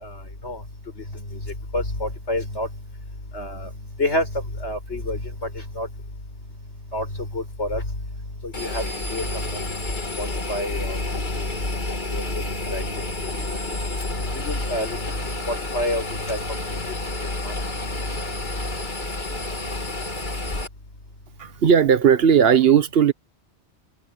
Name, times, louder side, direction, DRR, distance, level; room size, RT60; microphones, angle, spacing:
voice 1, 1.7-2.7 3.3-3.7 4.0-4.3 4.6-5.2 5.8-5.9 6.9-7.1 7.3-7.8 8.4-8.8 9.1-9.2 9.5-9.6 10.2-11.8 12.1-12.2 12.7-12.8 14.3-15.0 15.5-16.4 17.4-17.5, left 1 dB, 75° left, 5.7 m, -28 dB
Engine, 8.5-20.7, left 2 dB, 45° left, 2.3 m, -29 dB
voice 2, 21.4-23.1, right 8 dB, 60° right, 1.0 m, -16 dB
omnidirectional pair, 1.2 m